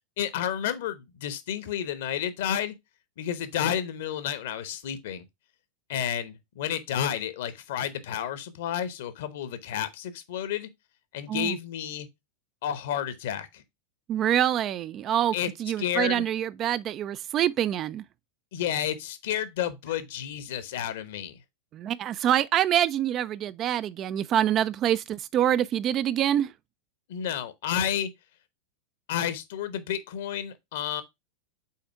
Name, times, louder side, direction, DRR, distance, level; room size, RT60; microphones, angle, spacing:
voice 1, 0.2-2.7 3.2-5.2 5.9-10.7 11.1-12.1 12.6-13.6 15.3-15.5 15.8-16.2 18.5-21.3 27.1-28.1 29.1-31.0, left 10 dB, 55° left, 0.9 m, -31 dB
voice 2, 14.1-18.0 21.7-26.5, right 11 dB, 30° right, 0.3 m, -26 dB
5.6 x 4.3 x 4.6 m
figure-of-eight pair, 90°, 0 cm